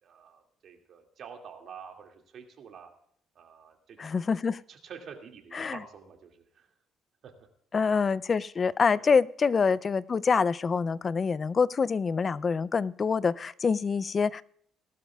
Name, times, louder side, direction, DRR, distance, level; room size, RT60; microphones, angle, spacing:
voice 1, 0.0-2.9 3.4-4.3 4.7-6.7 7.2-7.3 9.0-9.1, right 6 dB, 55° right, 3 dB, 2.1 m, -48 dB
voice 2, 4.0-4.6 5.6-5.8 7.7-14.4, left 5 dB, 35° left, 19 dB, 0.4 m, -26 dB
19.5 x 12.5 x 2.3 m, 0.62 s
cardioid pair, 110°, 0 cm